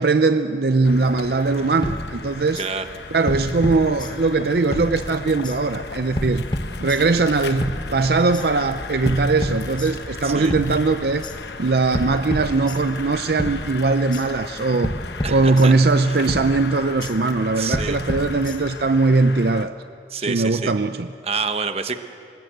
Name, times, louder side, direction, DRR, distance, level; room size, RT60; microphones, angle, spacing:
voice 1, 0.0-2.6 3.1-6.4 6.8-11.3 11.6-14.9 15.3-19.8 20.2-21.1, right 3 dB, 60° right, 10 dB, 0.6 m, -20 dB
sound 1, 0.8-19.7, left 4 dB, 75° left, 1.0 m, -36 dB
sound 2, 1.8-2.7 3.3-4.4 4.7-5.6 6.2-7.3 7.6-8.5 9.1-10.2 10.5-11.4 11.9-13.1 13.4-14.3 14.8-16.0 16.3-17.2 17.7-18.9, left 1 dB, 25° left, 1.1 m, -30 dB
voice 2, 10.2-10.5 15.2-15.7 16.1-16.2 17.6-18.0 20.1-20.7 21.2-21.9, right 5 dB, 35° right, 8 dB, 1.0 m, -27 dB
26.0 x 20.0 x 7.9 m, 2.5 s
head